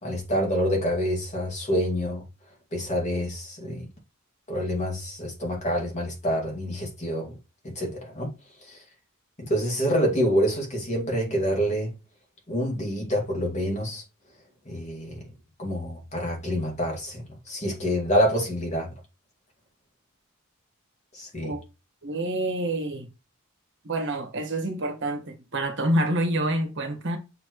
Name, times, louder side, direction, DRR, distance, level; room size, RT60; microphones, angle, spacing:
voice 1, 0.0-2.2 2.7-3.9 4.5-7.4 7.6-8.3 8.7-8.8 9.4-11.9 12.5-14.0 14.7-15.3 15.6-18.9 21.1-21.5, equal, 35° left, 2.3 m, -27 dB
voice 2, 22.0-23.1 23.8-27.2, right 1 dB, 60° right, 1.6 m, -27 dB
7.2 x 4.4 x 3.1 m
head